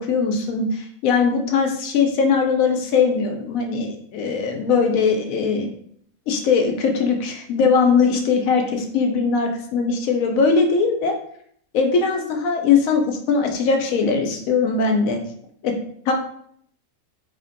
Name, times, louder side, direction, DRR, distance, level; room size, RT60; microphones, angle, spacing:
voice 1, 0.0-5.7 6.3-11.1 11.7-15.2 15.6-15.7 16.1-16.2, left 5 dB, 75° left, 3 dB, 1.0 m, -20 dB
3.1 x 2.5 x 2.5 m, 0.65 s
omnidirectional pair, 1.5 m